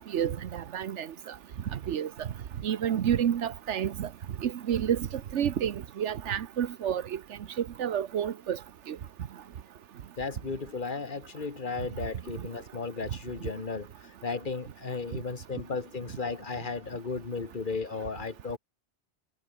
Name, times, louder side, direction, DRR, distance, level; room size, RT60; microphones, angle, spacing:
voice 1, 0.1-1.1 1.9-2.3 2.6-4.1 4.4-5.0 5.3-7.2 7.6-8.6 8.9-9.0, right 9 dB, 85° right, 1.2 m, -29 dB
voice 2, 10.2-18.6, left 4 dB, 45° left, 2.0 m, -35 dB
omnidirectional pair, 1.2 m